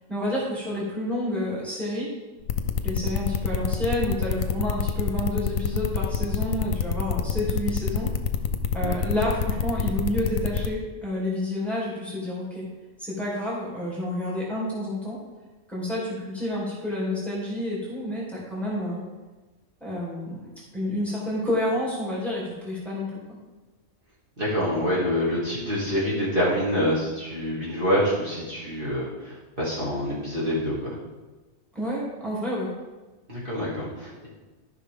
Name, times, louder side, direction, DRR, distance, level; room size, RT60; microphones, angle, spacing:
voice 1, 0.1-2.1 2.8-8.1 8.7-12.7 13.0-15.2 15.7-19.0 19.8-20.4 20.7-23.1 31.7-32.7, left 1 dB, ahead, -7 dB, 2.9 m, -29 dB
sound 1, 2.5-10.7, left 6 dB, 75° left, 1.1 m, -26 dB
voice 2, 24.4-31.0 33.3-34.3, equal, 40° right, -8 dB, 2.7 m, -26 dB
13.5 x 5.8 x 3.7 m, 1.2 s
omnidirectional pair, 1.4 m